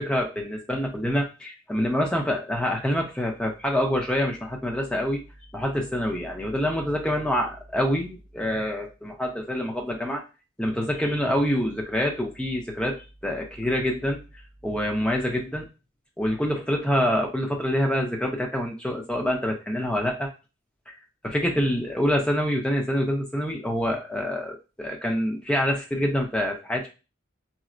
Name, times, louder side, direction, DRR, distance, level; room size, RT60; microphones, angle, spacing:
voice 1, 0.0-5.2 5.5-10.2 10.6-14.2 14.6-15.7 16.2-20.3 20.9-21.0 21.2-26.9, equal, 5° left, 0 dB, 0.6 m, -26 dB
4.1 x 2.0 x 2.5 m, 0.30 s
head